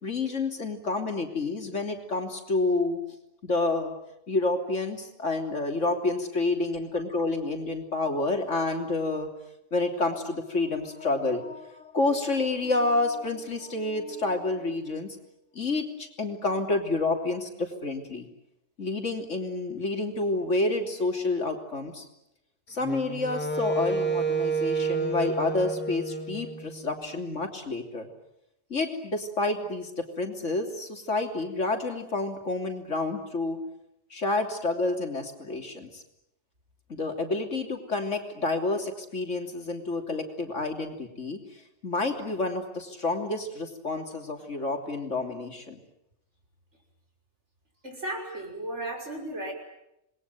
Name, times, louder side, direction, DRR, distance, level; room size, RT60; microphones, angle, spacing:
voice 1, 0.0-3.0 3.4-3.9 4.3-9.3 9.7-15.2 15.6-18.3 18.8-22.1 22.7-28.1 28.7-33.6 34.1-36.0 36.9-41.4 41.8-45.8, left 2 dB, 75° left, 4 dB, 3.6 m, -29 dB
Wind instrument woodwind instrument, 22.8-27.0, right 3 dB, 10° left, 2.5 m, -30 dB
voice 2, 47.8-49.5, right 1 dB, 65° right, 2 dB, 6.4 m, -35 dB
27.5 x 21.0 x 9.3 m, 0.83 s
omnidirectional pair, 1.3 m